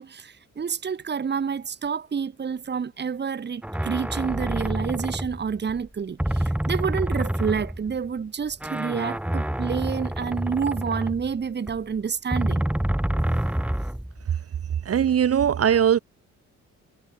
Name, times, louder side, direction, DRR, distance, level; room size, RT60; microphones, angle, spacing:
voice 1, 0.0-12.7, right 6 dB, 35° right, 1.7 m, -29 dB
sound 1, 3.6-5.9 6.2-8.1 8.5-11.8 12.3-14.3, right 1 dB, 5° right, 2.8 m, -27 dB
voice 2, 14.8-16.0, right 8 dB, 50° right, 1.7 m, -20 dB
cardioid pair, 90°, 30 cm